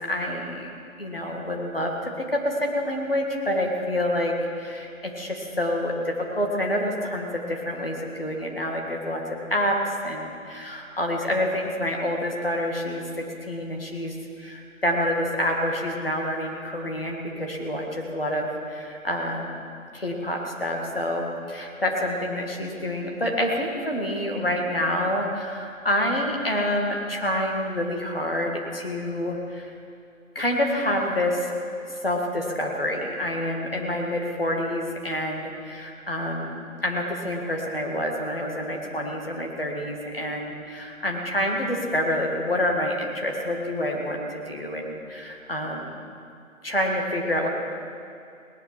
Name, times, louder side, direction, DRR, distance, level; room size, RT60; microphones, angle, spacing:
voice 1, 0.1-0.7 1.0-9.8 10.0-13.0 13.5-19.5 19.9-29.7 30.4-31.5 32.0-36.6 36.8-45.9 46.6-47.5, left 1 dB, 40° left, 0 dB, 2.1 m, -27 dB
18.5 x 10.5 x 5.9 m, 2.5 s
figure-of-eight pair, 180°, 42 cm